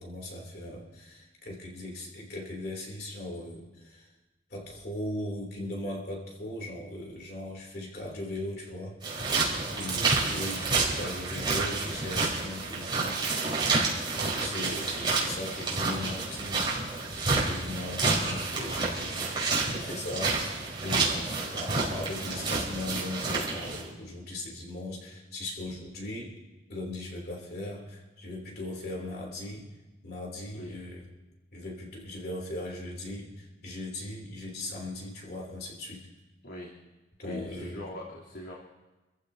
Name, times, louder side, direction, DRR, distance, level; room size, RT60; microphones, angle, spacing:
voice 1, 0.0-4.1 4.5-9.0 9.7-13.3 14.1-16.7 17.2-20.4 20.8-26.4 26.7-29.7 30.0-31.1 31.5-36.1 37.2-37.8, left 1 dB, 60° left, -1 dB, 3.1 m, -38 dB
sound 1, 9.0-23.8, right 3 dB, 25° right, 4.4 m, -29 dB
voice 2, 9.7-10.0 17.6-17.9 28.9-29.2 30.5-30.8 36.4-36.7 37.2-38.5, left 1 dB, 90° left, -6 dB, 3.2 m, -43 dB
27.5 x 15.5 x 2.8 m, 1.1 s
head